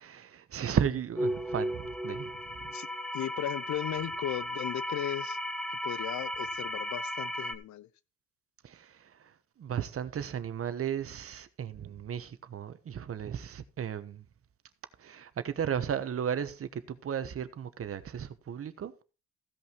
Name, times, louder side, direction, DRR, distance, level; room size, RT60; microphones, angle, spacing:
voice 1, 0.0-2.7 8.6-14.2 15.0-18.9, right 8 dB, 50° right, 1.1 m, -35 dB
sound 1, 1.2-7.5, equal, ahead, 1.0 m, -35 dB
voice 2, 3.1-5.4 5.8-7.9, left 12 dB, 70° left, 0.7 m, -36 dB
15.5 x 5.6 x 4.5 m
cardioid pair, 90°, 30 cm